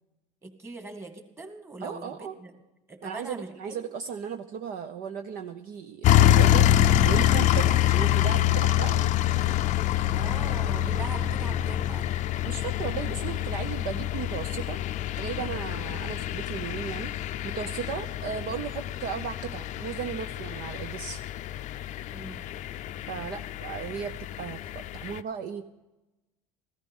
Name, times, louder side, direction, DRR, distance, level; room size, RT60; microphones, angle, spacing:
voice 1, 0.4-2.6 2.9-3.9 10.1-12.1 22.1-22.5, right 2 dB, 15° right, 6 dB, 2.1 m, -41 dB
voice 2, 1.8-2.4 3.0-6.7 7.0-9.1 12.4-14.8 15.2-21.2 23.1-25.6, right 7 dB, 55° right, 8 dB, 0.9 m, -36 dB
sound 1, 6.0-25.2, left 12 dB, 45° left, 0.6 m, -26 dB
15.0 x 14.0 x 5.5 m, 1.0 s
supercardioid pair, 105°, 17 cm